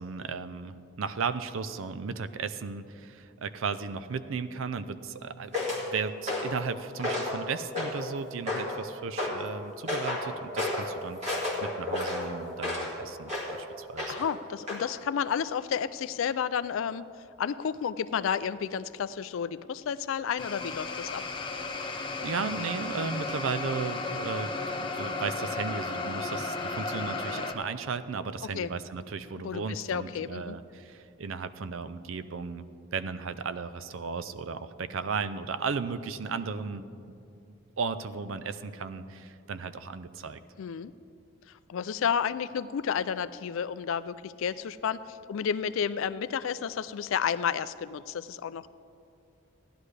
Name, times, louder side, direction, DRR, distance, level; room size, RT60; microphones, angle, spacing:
voice 1, 0.0-5.5 5.8-14.2 21.8-36.9 37.8-40.4, right 5 dB, 70° right, 13 dB, 0.5 m, -35 dB
sound 1, 5.5-5.8 6.3-6.6 7.0-7.4 7.7-8.1 8.5-8.8 9.2-9.4 9.9-10.3 10.6-10.9 11.2-12.9 13.3-13.5 14.0-14.3 14.7-14.8, left 2 dB, 30° right, 2.1 m, -31 dB
voice 2, 14.1-17.1 17.4-21.2 28.5-28.7 29.3-30.6 40.6-40.9 41.7-48.7, left 7 dB, 70° left, 15 dB, 0.3 m, -31 dB
sound 2, 20.4-27.5, left 3 dB, 25° left, 0.6 m, -34 dB
16.0 x 11.0 x 3.3 m, 2.5 s
head